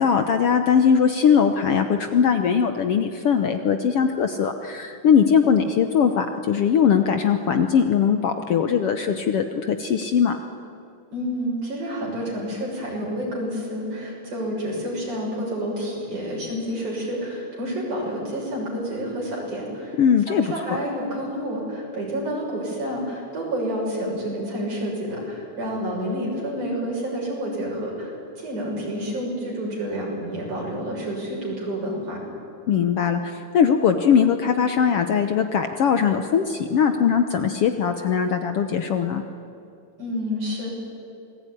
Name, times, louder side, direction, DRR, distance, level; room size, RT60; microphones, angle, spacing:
voice 1, 0.0-10.4 20.0-20.5 32.7-39.2, left 7 dB, 70° left, 7 dB, 1.4 m, -20 dB
voice 2, 11.1-20.0 20.3-32.2 40.0-40.7, equal, 65° right, -4 dB, 8.1 m, -29 dB
27.5 x 19.5 x 10.0 m, 2.7 s
omnidirectional pair, 3.8 m